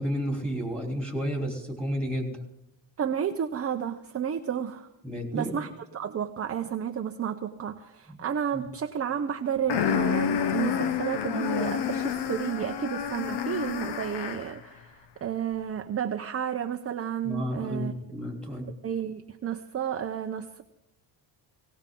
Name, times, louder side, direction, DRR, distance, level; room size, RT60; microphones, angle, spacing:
voice 1, 0.0-2.4 5.0-5.6 8.1-8.2 8.5-8.6 17.2-18.7, equal, ahead, 1 dB, 3.4 m, -31 dB
voice 2, 3.0-4.9 5.3-14.9 15.2-17.9 18.8-20.6, right 8 dB, 30° right, 5 dB, 0.7 m, -31 dB
sound 1, 9.7-14.6, left 8 dB, 55° left, 1.0 m, -29 dB
18.5 x 18.0 x 3.8 m, 0.86 s
cardioid pair, 115°, 48 cm